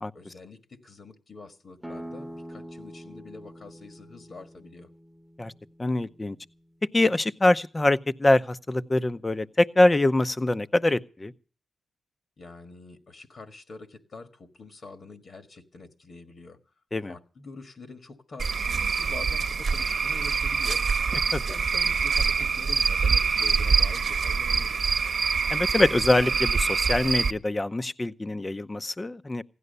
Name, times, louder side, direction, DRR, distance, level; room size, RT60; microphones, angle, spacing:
voice 1, 0.1-4.9 12.4-16.6 17.1-20.9 21.3-24.8, left 3 dB, 55° left, 1.7 m, -45 dB
sound 1, 1.8-7.2, equal, 5° left, 1.0 m, -45 dB
voice 2, 5.8-6.4 6.9-11.3 16.9-17.1 21.3-21.4 25.5-29.4, left 2 dB, 25° left, 0.7 m, -24 dB
Cricket / Frog, 18.4-27.3, right 5 dB, 60° right, 1.0 m, -25 dB
16.0 x 11.0 x 6.8 m
cardioid pair, 75°, 0 cm